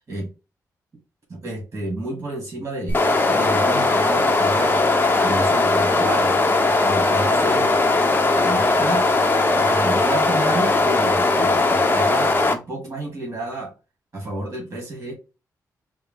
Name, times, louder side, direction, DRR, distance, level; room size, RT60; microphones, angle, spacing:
voice 1, 1.3-3.0 3.3-4.8 5.2-6.4 6.8-7.7 8.3-9.1 9.6-13.7 14.1-15.1, right 2 dB, 35° right, -1 dB, 1.9 m, -30 dB
sound 1, 2.9-12.5, left 3 dB, 30° left, 0.8 m, -19 dB
4.6 x 2.1 x 3.6 m, 0.29 s
cardioid pair, 85°, 7 cm